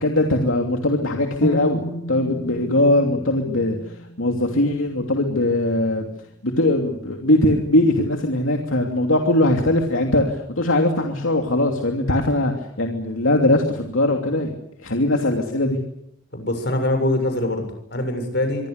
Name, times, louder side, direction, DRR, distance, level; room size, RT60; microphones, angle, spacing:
voice 1, 0.0-3.8 4.2-6.0 6.4-12.5 12.8-14.5 14.8-15.8, left 1 dB, 90° left, 2 dB, 2.9 m, -20 dB
sound 1, 1.4-5.4, equal, 15° left, 4.1 m, -34 dB
voice 2, 16.3-18.7, left 1 dB, 55° left, 7 dB, 7.2 m, -23 dB
25.5 x 23.5 x 6.7 m, 0.75 s
head